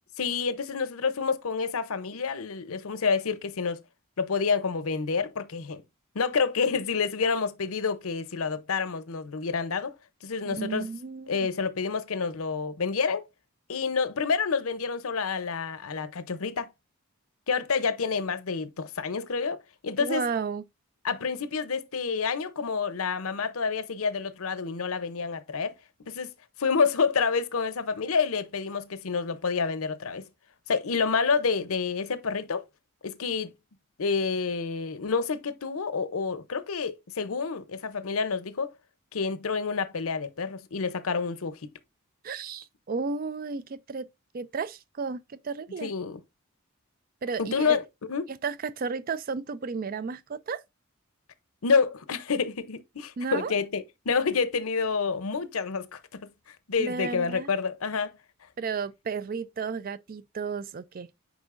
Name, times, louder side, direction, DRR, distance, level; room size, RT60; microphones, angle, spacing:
voice 1, 0.2-3.8 4.2-5.8 6.1-9.9 10.2-10.9 11.3-13.2 13.7-16.7 17.5-20.2 21.0-25.8 26.1-26.3 26.6-30.3 30.7-32.6 33.0-33.5 34.0-38.7 39.1-41.7 45.8-46.2 47.4-48.3 51.6-58.1, left 5 dB, 75° left, 0.7 m, -28 dB
voice 2, 10.4-11.5 20.0-20.6 42.2-44.1 44.3-45.9 47.2-47.8 48.3-50.6 53.2-53.5 56.8-57.5 58.6-61.1, right 5 dB, 40° right, 0.4 m, -33 dB
8.2 x 5.1 x 2.5 m
head